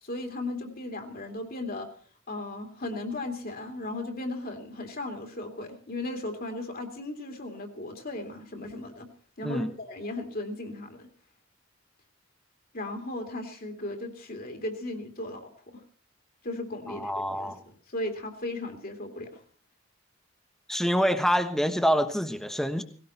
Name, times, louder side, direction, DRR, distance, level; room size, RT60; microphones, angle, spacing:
voice 1, 0.0-1.9 2.3-9.1 9.4-11.1 12.7-15.8 16.4-19.4, left 2 dB, 50° left, 4 dB, 2.7 m, -36 dB
voice 2, 16.9-17.6 20.7-22.8, equal, ahead, 8 dB, 1.2 m, -26 dB
18.0 x 17.0 x 4.4 m, 0.43 s
head